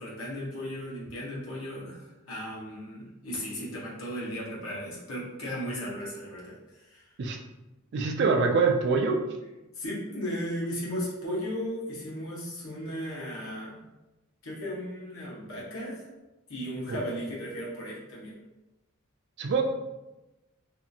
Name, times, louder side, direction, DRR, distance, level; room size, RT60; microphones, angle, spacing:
voice 1, 0.0-7.0 9.7-13.8 14.4-16.0 16.5-18.3, equal, 75° left, -5 dB, 1.0 m, -36 dB
voice 2, 7.9-9.2 16.9-17.0 19.4-19.6, right 4 dB, 55° right, 3 dB, 0.4 m, -24 dB
2.7 x 2.4 x 2.6 m, 1.0 s
head